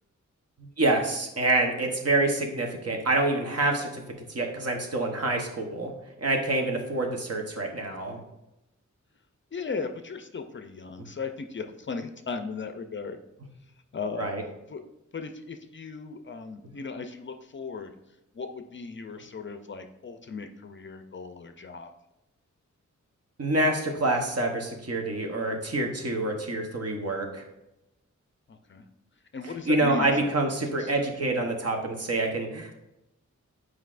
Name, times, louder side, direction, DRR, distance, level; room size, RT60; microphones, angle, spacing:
voice 1, 0.6-4.0 4.3-8.2 14.2-14.4 23.4-27.5 29.7-32.7, right 2 dB, 55° right, 2 dB, 1.0 m, -27 dB
voice 2, 9.5-13.2 13.9-14.3 14.7-14.8 15.1-17.9 18.3-21.9 28.5-28.9 29.3-30.9, left 4 dB, 40° left, 7 dB, 0.4 m, -37 dB
8.0 x 4.8 x 2.5 m, 0.91 s
wide cardioid pair, 110°, 30 cm